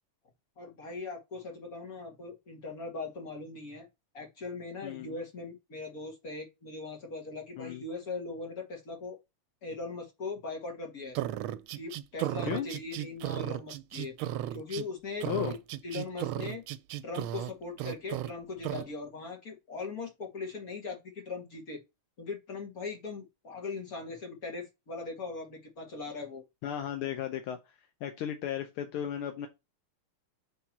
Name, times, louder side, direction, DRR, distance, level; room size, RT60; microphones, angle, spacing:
voice 1, 0.6-3.9 4.1-9.2 9.6-11.2 11.7-14.1 14.5-15.6 15.8-16.6 17.0-21.8 22.2-26.4, left 3 dB, 45° left, 2.4 m, -40 dB
voice 2, 4.8-5.2 7.6-7.8 12.4-12.7 15.3-15.5 26.6-27.6 28.0-29.5, left 10 dB, 80° left, 1.6 m, -35 dB
sound 1, 11.1-14.9 15.2-17.5 17.8-18.3 18.6-18.9, right 13 dB, 80° right, 1.4 m, -35 dB
5.9 x 3.6 x 5.9 m
omnidirectional pair, 2.4 m